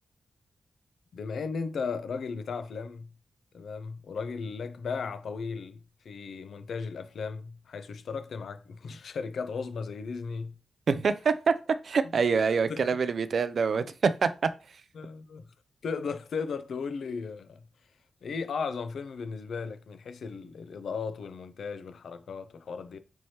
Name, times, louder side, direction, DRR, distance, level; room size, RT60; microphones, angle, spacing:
voice 1, 1.1-3.1 3.5-10.5 12.0-12.9 14.9-15.5 15.8-17.6 18.2-23.0, left 5 dB, 80° left, 0.5 m, -36 dB
voice 2, 10.9-11.5 11.8-14.3, right 5 dB, 60° right, 0.3 m, -25 dB
4.4 x 3.1 x 2.8 m
wide cardioid pair, 125°, 0 cm